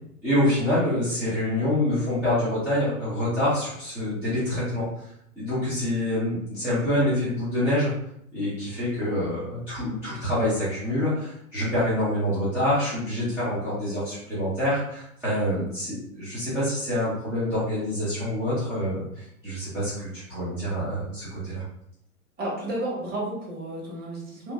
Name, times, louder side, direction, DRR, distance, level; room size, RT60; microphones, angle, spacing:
voice 1, 0.2-5.1 5.4-7.9 8.3-21.6, left 1 dB, 5° right, -13 dB, 0.3 m, -26 dB
voice 2, 22.4-24.5, right 1 dB, 20° right, -5 dB, 1.1 m, -32 dB
2.9 x 2.5 x 2.3 m, 0.73 s
hypercardioid pair, 115°, 45 cm